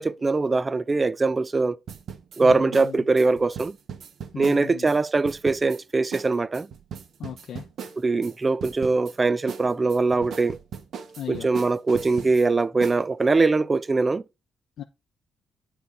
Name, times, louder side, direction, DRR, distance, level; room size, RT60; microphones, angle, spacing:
voice 1, 0.0-1.8 2.4-3.8 4.4-6.7 8.0-10.6 11.3-14.2, right 3 dB, 25° right, 0.4 m, -22 dB
sound 1, 1.9-5.0 5.2-5.8 6.1-6.3 6.5-8.3 8.6-9.1 9.5-12.4 12.8-13.0, right 7 dB, 65° right, 1.1 m, -38 dB
voice 2, 2.4-3.0 4.3-4.9 7.2-7.7 11.2-11.5 14.8-14.9, left 10 dB, 70° left, 0.7 m, -37 dB
8.5 x 4.4 x 4.6 m
cardioid pair, 90°, 0 cm